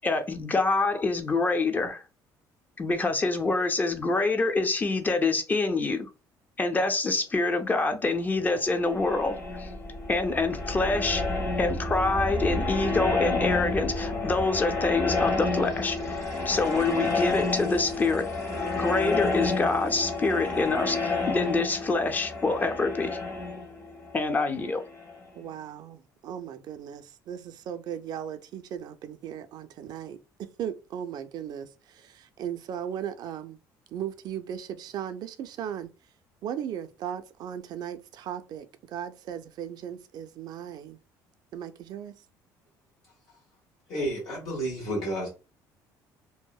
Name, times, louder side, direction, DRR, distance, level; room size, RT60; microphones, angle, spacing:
voice 1, 0.0-2.0 2.8-6.1 6.6-9.7 10.1-11.2 11.6-18.3 18.7-23.2 24.1-24.8, left 3 dB, 20° left, 0.4 m, -26 dB
sound 1, 8.6-25.2, left 3 dB, 40° left, 1.0 m, -30 dB
voice 2, 25.3-30.2 30.6-33.6 33.9-35.9 36.4-41.0 41.5-42.1, right 9 dB, 60° right, 0.4 m, -37 dB
voice 3, 43.9-45.3, right 1 dB, 70° left, 1.0 m, -31 dB
2.7 x 2.0 x 2.3 m
cardioid pair, 105°, 8 cm